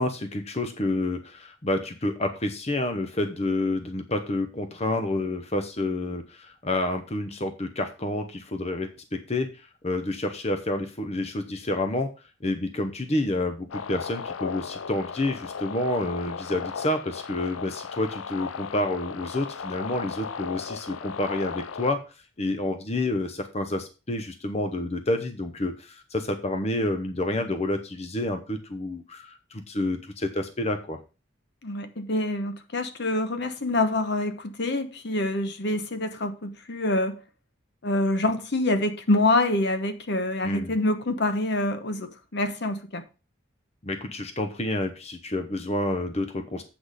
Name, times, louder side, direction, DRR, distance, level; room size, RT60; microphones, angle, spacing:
voice 1, 0.0-9.5 9.8-12.1 12.4-22.0 22.4-31.0 40.4-40.7 43.8-46.6, left 2 dB, 35° left, 0.8 m, -29 dB
sound 1, 13.7-22.0, left 6 dB, 90° left, 0.5 m, -36 dB
voice 2, 31.6-37.2 37.8-43.0, left 2 dB, 60° left, 1.0 m, -26 dB
8.1 x 6.2 x 4.9 m
head